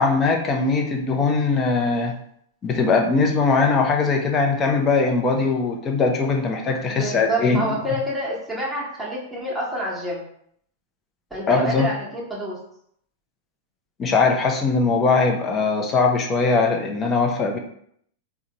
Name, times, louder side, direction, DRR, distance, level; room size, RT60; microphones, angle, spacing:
voice 1, 0.0-2.1 2.6-7.8 11.5-11.9 14.0-17.6, left 4 dB, 30° left, 2 dB, 0.7 m, -20 dB
voice 2, 6.9-10.2 11.3-12.6, right 1 dB, 5° right, -7 dB, 1.2 m, -28 dB
3.7 x 2.3 x 2.9 m, 0.68 s
hypercardioid pair, 100°, 0 cm